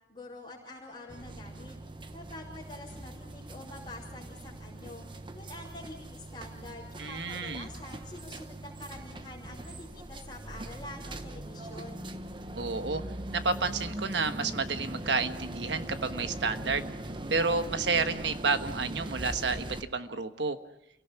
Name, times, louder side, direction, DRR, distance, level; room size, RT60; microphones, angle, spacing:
voice 1, 0.1-1.8 2.1-5.1 5.3-12.1, left 2 dB, 25° left, -8 dB, 4.7 m, -46 dB
sound 1, 1.1-19.8, right 1 dB, 30° right, 1.0 m, -41 dB
voice 2, 7.0-7.7 12.6-13.0 13.3-16.9 17.3-20.6, right 4 dB, 90° right, 9 dB, 1.3 m, -30 dB
28.5 x 17.5 x 5.9 m, 0.81 s
head